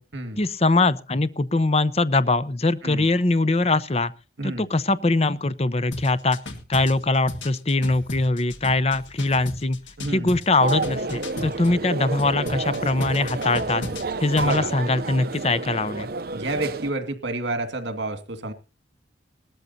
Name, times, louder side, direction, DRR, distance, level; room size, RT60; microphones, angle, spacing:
voice 1, 0.4-4.1 4.4-6.4 6.7-9.8 10.1-13.8 14.2-16.1, left 2 dB, 35° left, 15 dB, 0.8 m, -22 dB
sound 1, 5.9-11.8 12.2-14.6, left 2 dB, 80° left, 1.9 m, -36 dB
voice 2, 10.0-10.4 14.4-14.7 16.3-18.5, right 2 dB, 70° right, 8 dB, 2.1 m, -29 dB
sound 2, 10.6-16.9, right 3 dB, 55° right, 0.7 m, -30 dB
20.0 x 13.5 x 2.8 m, 0.32 s
head